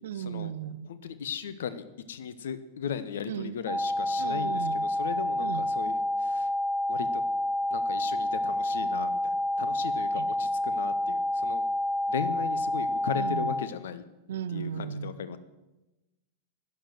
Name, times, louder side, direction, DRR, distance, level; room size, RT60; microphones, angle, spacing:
voice 1, 0.0-0.9 3.3-3.6 4.2-4.8 5.4-5.7 10.1-10.3 13.2-13.6 14.3-15.2, right 9 dB, 60° right, 16 dB, 0.6 m, -36 dB
voice 2, 0.9-6.0 6.2-6.5 6.9-7.2 7.7-11.7 12.1-14.0 14.5-15.4, left 8 dB, 60° left, 13 dB, 1.0 m, -37 dB
sound 1, 3.7-13.7, left 1 dB, 15° right, 0.4 m, -29 dB
11.5 x 10.0 x 7.6 m, 1.0 s
figure-of-eight pair, 90°, 0 cm